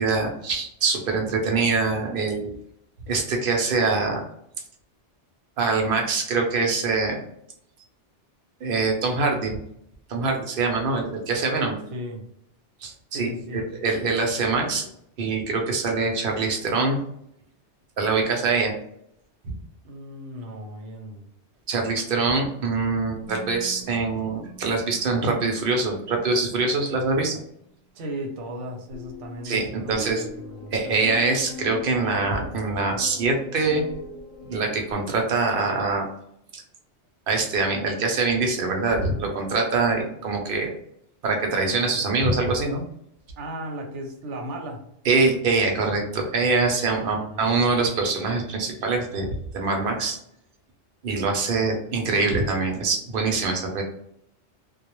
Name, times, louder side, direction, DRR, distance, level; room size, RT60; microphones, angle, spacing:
voice 1, 0.0-2.5 3.1-4.2 5.6-7.2 8.6-9.6 10.1-11.8 12.8-14.9 15.2-17.0 18.0-18.7 19.4-19.5 21.7-27.4 29.4-30.3 30.7-33.8 34.4-36.1 36.5-36.6 37.3-40.8 41.2-42.8 45.1-50.2 51.0-53.8, right 3 dB, 60° right, 2 dB, 0.7 m, -24 dB
voice 2, 11.9-12.2 13.1-13.6 19.8-21.3 27.9-30.9 43.4-44.8 46.8-47.4, equal, 90° right, 3 dB, 0.9 m, -36 dB
sound 1, 23.2-26.4 28.9-34.9, left 2 dB, 35° left, 0.7 m, -42 dB
2.2 x 2.0 x 2.9 m, 0.74 s
omnidirectional pair, 1.2 m